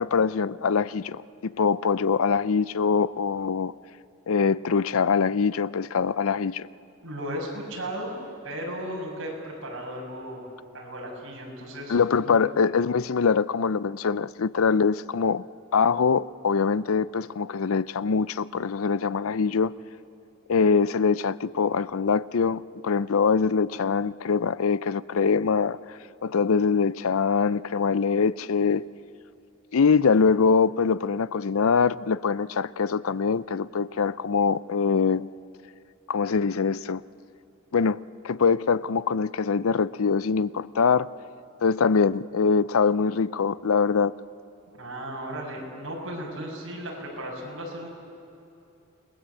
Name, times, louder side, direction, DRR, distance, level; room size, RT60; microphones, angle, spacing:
voice 1, 0.0-3.7 4.3-6.7 11.9-15.5 15.7-19.7 20.5-25.8 26.2-28.8 29.7-35.3 36.1-37.0 37.7-38.0 38.2-41.1 41.6-44.1, left 5 dB, 75° left, 0.5 m, -23 dB
voice 2, 7.0-10.4 10.7-12.4 44.7-47.9, equal, 55° right, 7.2 m, -35 dB
28.5 x 21.0 x 8.5 m
head